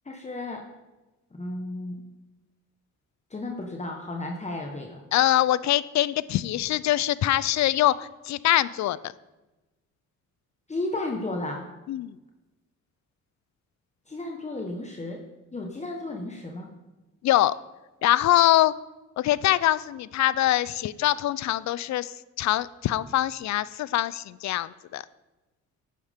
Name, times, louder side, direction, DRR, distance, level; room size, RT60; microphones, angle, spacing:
voice 1, 0.0-0.6 1.3-2.0 3.3-5.0 10.7-11.7 14.1-15.2 15.5-16.7, left 2 dB, 25° left, 1 dB, 1.3 m, -33 dB
voice 2, 5.1-9.1 11.9-12.2 17.2-17.6 18.0-18.7 19.2-25.0, left 14 dB, 65° left, 19 dB, 0.5 m, -24 dB
12.0 x 9.3 x 3.6 m, 1.1 s
cardioid pair, 90°, 30 cm